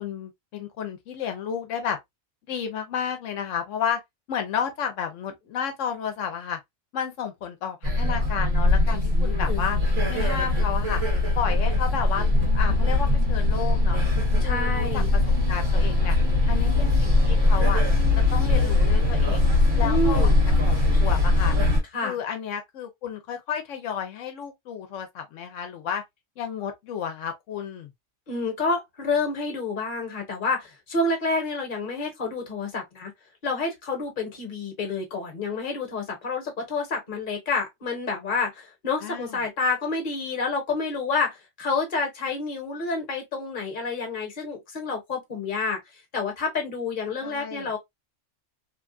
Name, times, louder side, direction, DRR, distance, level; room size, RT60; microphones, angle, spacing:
voice 1, 0.0-2.0 2.5-4.0 4.3-6.6 6.9-9.8 10.1-11.0 11.4-12.3 12.5-14.0 14.4-15.2 15.5-16.2 16.5-17.8 18.1-19.4 19.8-20.3 20.6-21.6 22.0-26.0 26.4-27.9 39.0-39.4 47.2-47.7, left 8 dB, 85° left, 0.9 m, -32 dB
sound 1, 7.8-21.8, left 2 dB, 70° right, 1.4 m, -21 dB
voice 2, 9.1-9.6 14.4-15.1 19.8-20.3 21.9-22.2 28.3-33.1 33.4-45.8 46.1-47.8, left 3 dB, 45° left, 1.1 m, -29 dB
3.1 x 2.3 x 2.3 m
omnidirectional pair, 1.3 m